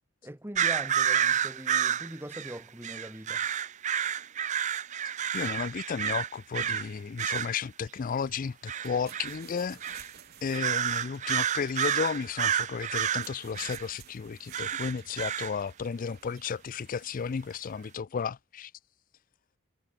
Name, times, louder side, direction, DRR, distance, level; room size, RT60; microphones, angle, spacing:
voice 1, 0.2-3.4, right 1 dB, 10° right, 2.2 m, -41 dB
sound 1, 0.5-6.9 7.2-7.6 8.7-9.4 9.8-10.1 10.5-13.8 14.5-15.5, right 9 dB, 35° right, 0.5 m, -30 dB
voice 2, 5.3-10.1 10.4-18.7, left 6 dB, 40° left, 0.4 m, -33 dB
sound 2, 8.8-17.4, right 8 dB, 50° right, 5.3 m, -55 dB
head